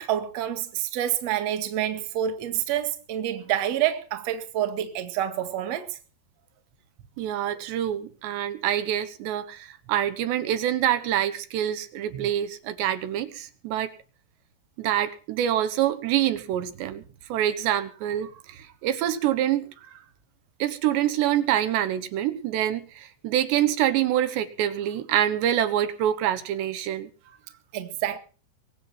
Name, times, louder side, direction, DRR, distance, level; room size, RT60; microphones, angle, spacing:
voice 1, 0.0-6.0 27.7-28.2, right 11 dB, 50° right, 2.4 m, -28 dB
voice 2, 7.2-13.9 14.8-17.0 17.3-20.0 20.6-27.1, right 11 dB, 85° right, 3.5 m, -26 dB
23.5 x 7.9 x 6.0 m
omnidirectional pair, 4.9 m